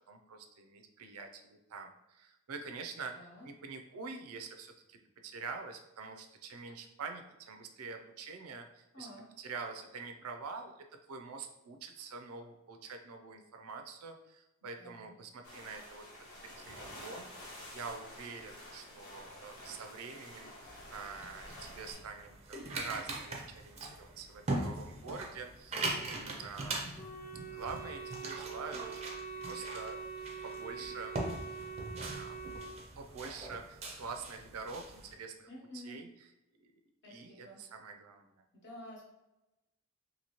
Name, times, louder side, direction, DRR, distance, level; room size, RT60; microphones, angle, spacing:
voice 1, 0.1-9.1 9.4-10.7 11.1-16.0 16.6-20.5 20.9-26.9 27.5-29.1 29.4-30.0 30.4-31.2 32.0-35.5 35.7-36.1 36.6-36.7 37.1-38.4, right 4 dB, 85° right, 5 dB, 0.4 m, -46 dB
voice 2, 3.1-3.5 8.9-9.3 14.8-15.2 25.7-26.1 35.5-36.0 37.0-37.6 38.5-39.0, left 1 dB, 55° left, -3 dB, 1.0 m, -50 dB
sound 1, 15.4-21.9, left 1 dB, 80° left, 1.0 m, -50 dB
sound 2, 20.6-35.1, right 2 dB, 30° right, 0.4 m, -41 dB
Wind instrument woodwind instrument, 26.9-32.7, right 5 dB, 35° left, 0.6 m, -44 dB
2.8 x 2.7 x 2.9 m, 0.96 s
head